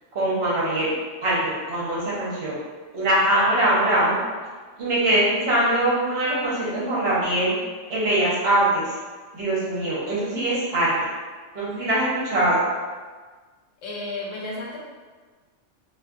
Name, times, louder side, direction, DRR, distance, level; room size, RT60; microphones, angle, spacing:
voice 1, 0.1-0.9 1.2-2.6 2.9-4.2 4.8-7.5 7.9-8.9 9.3-10.9 11.5-12.6, right 1 dB, 60° right, -7 dB, 0.9 m, -22 dB
voice 2, 13.8-14.8, left 2 dB, 80° left, -3 dB, 1.0 m, -32 dB
2.5 x 2.5 x 2.3 m, 1.4 s
omnidirectional pair, 1.3 m